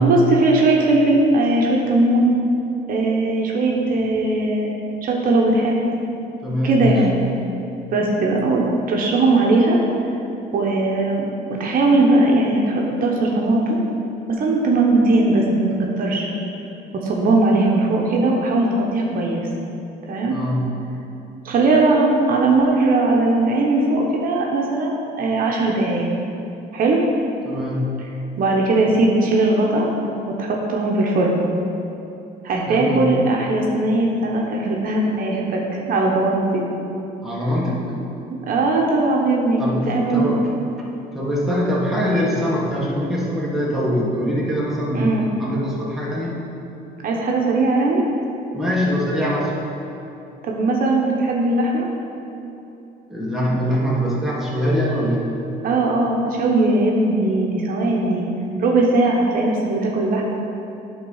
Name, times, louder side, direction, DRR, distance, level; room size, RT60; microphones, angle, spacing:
voice 1, 0.0-2.3 2.9-4.7 5.0-5.8 6.6-7.2 7.9-8.6 8.9-9.8 10.5-11.3 11.6-13.8 14.3-16.3 17.0-19.5 20.1-20.4 21.4-26.1 26.7-27.0 28.4-29.9 30.3-31.4 32.4-36.7 38.2-40.4 44.9-45.3 47.0-48.0 50.4-51.9 55.6-58.3 58.6-60.2, right 2 dB, 55° right, -1 dB, 1.0 m, -19 dB
voice 2, 6.4-7.0 20.3-20.8 27.4-27.9 32.7-33.1 37.2-37.9 39.6-40.5 41.1-46.4 48.5-49.5 53.1-55.3 56.7-56.8, equal, ahead, -5 dB, 1.5 m, -23 dB
9.2 x 3.7 x 5.5 m, 2.9 s
cardioid pair, 110°, 17 cm